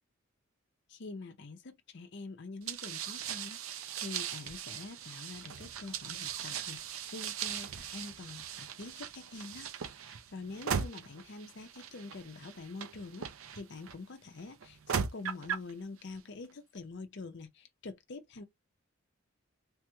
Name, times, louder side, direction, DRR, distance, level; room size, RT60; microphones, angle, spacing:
voice 1, 0.9-9.7 10.0-13.3 13.5-18.4, left 3 dB, 55° left, 0.6 m, -46 dB
sound 1, 2.7-13.9 14.6-15.7, right 7 dB, 75° right, 0.6 m, -39 dB
3.4 x 3.0 x 2.2 m
head